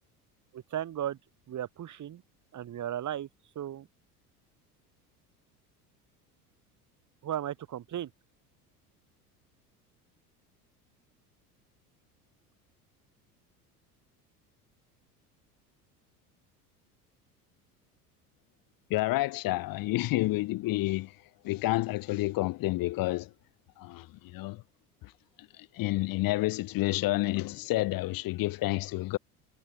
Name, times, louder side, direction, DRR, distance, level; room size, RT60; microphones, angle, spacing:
voice 1, 0.5-1.2 1.5-2.2 2.5-3.3 3.5-3.9 7.2-8.1, right 11 dB, 40° right, 4.5 m, -35 dB
voice 2, 18.9-21.1 21.4-23.3 23.8-24.6 25.6-29.2, left 19 dB, 45° left, 1.7 m, -29 dB
figure-of-eight pair, 70°, 46 cm